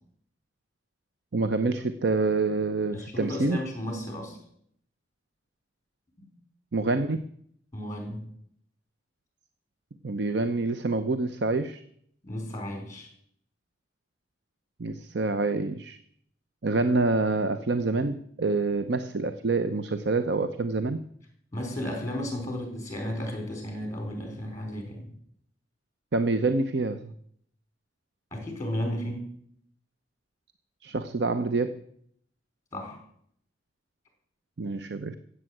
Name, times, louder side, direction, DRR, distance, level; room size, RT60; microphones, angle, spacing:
voice 1, 1.3-3.6 6.7-7.2 10.0-11.8 14.8-16.0 16.6-21.1 26.1-27.1 30.8-31.8 34.6-35.2, right 3 dB, 65° right, 11 dB, 0.7 m, -27 dB
voice 2, 2.9-4.4 6.2-6.3 7.7-8.2 12.2-13.1 21.5-25.1 28.3-29.2 32.7-33.0, left 1 dB, 15° left, 3 dB, 4.4 m, -34 dB
14.0 x 8.2 x 7.8 m, 0.68 s
head